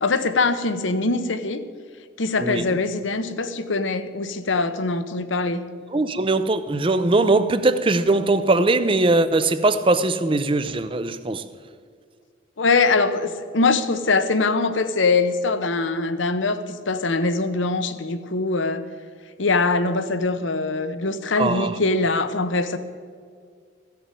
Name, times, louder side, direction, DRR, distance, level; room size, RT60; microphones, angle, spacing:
voice 1, 0.0-1.6 2.2-5.6 12.6-18.8 19.4-22.8, left 3 dB, 80° left, 0.9 m, -22 dB
voice 2, 5.9-11.5 21.3-21.8, right 2 dB, 25° right, 0.6 m, -20 dB
15.0 x 6.9 x 9.1 m
head